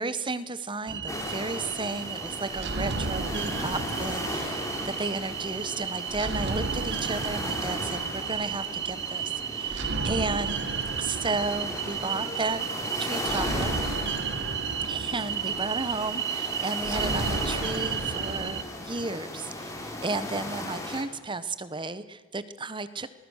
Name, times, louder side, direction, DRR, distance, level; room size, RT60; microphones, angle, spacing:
voice 1, 0.0-10.6 11.0-12.6 13.0-13.7 14.8-23.1, right 3 dB, 20° right, 14 dB, 1.0 m, -33 dB
sound 1, 0.9-18.6, right 6 dB, 50° right, 1.4 m, -32 dB
sound 2, 1.1-21.0, left 1 dB, 15° left, 3.1 m, -37 dB
sound 3, 12.0-16.8, left 1 dB, 40° left, 3.9 m, -47 dB
27.0 x 20.0 x 6.5 m, 1.4 s
head